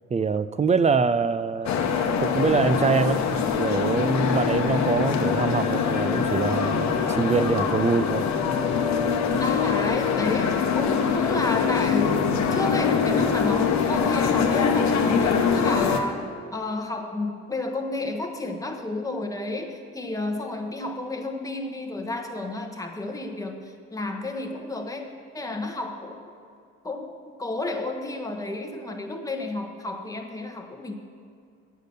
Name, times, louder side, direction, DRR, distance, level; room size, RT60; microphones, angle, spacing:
voice 1, 0.1-1.7 2.2-8.3, right 5 dB, 25° right, 13 dB, 0.3 m, -24 dB
sound 1, 1.6-16.0, left 6 dB, 65° left, 0.9 m, -23 dB
voice 2, 9.2-26.2 26.8-30.9, left 2 dB, 10° left, 4 dB, 1.0 m, -31 dB
8.3 x 6.7 x 6.7 m, 2.3 s
cardioid pair, 90°, 30 cm